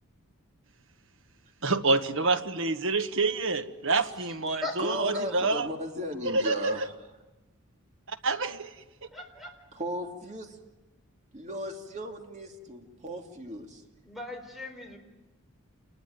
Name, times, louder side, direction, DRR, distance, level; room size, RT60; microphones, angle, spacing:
voice 1, 1.6-5.7 6.2-6.9 8.1-8.7, right 3 dB, 60° right, 10 dB, 1.3 m, -27 dB
voice 2, 4.8-6.9 9.7-10.6 11.3-13.8, equal, 35° right, 3 dB, 2.6 m, -36 dB
voice 3, 9.1-9.5 14.0-15.0, left 2 dB, ahead, 3 dB, 4.1 m, -38 dB
28.0 x 20.0 x 9.4 m, 1.1 s
head